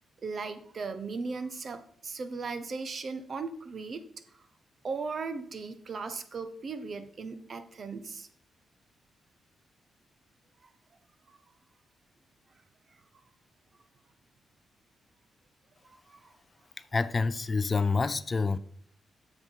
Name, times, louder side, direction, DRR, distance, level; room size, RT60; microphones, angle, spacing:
voice 1, 0.2-4.0 4.8-8.3 15.8-16.3, right 4 dB, 50° right, 0.9 m, -37 dB
voice 2, 16.9-18.6, left 4 dB, 30° left, 0.4 m, -27 dB
9.4 x 7.0 x 4.6 m
cardioid pair, 100°, 0 cm